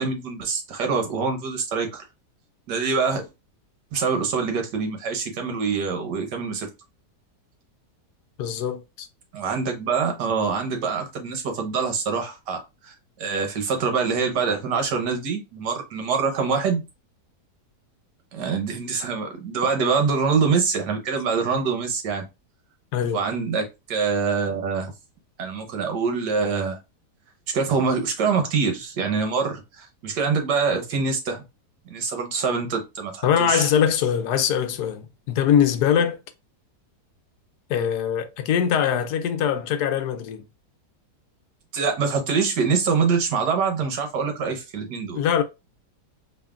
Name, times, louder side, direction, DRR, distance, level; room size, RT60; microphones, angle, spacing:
voice 1, 0.0-2.0 2.7-3.3 3.9-6.7 9.3-16.8 18.3-22.3 23.1-24.9 25.4-26.8 27.5-31.4 31.9-33.7 41.7-45.2, right 5 dB, 85° right, 1.6 m, -25 dB
voice 2, 8.4-9.1 22.9-23.2 33.2-36.2 37.7-40.4 45.2-45.4, left 8 dB, 75° left, 1.1 m, -22 dB
4.9 x 2.9 x 2.3 m
omnidirectional pair, 1.8 m